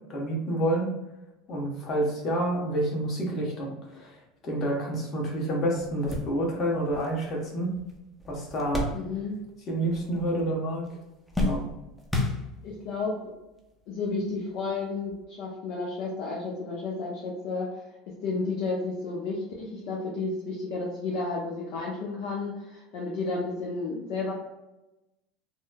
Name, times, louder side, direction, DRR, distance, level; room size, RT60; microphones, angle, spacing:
voice 1, 0.1-0.9 1.5-4.2 4.4-7.7 8.3-8.9 9.7-10.9 11.4-11.6, right 1 dB, 45° left, -2 dB, 1.0 m, -28 dB
sound 1, 5.3-5.4 5.8-9.6 9.8-10.5 10.8-12.9 13.7-13.8 15.1-15.2, left 1 dB, 5° left, 0.6 m, -33 dB
voice 2, 8.9-9.4 12.6-13.2 13.9-17.8 18.2-24.3, left 3 dB, 65° left, -4 dB, 0.6 m, -32 dB
3.0 x 2.0 x 2.2 m, 0.97 s
hypercardioid pair, 90°, 0 cm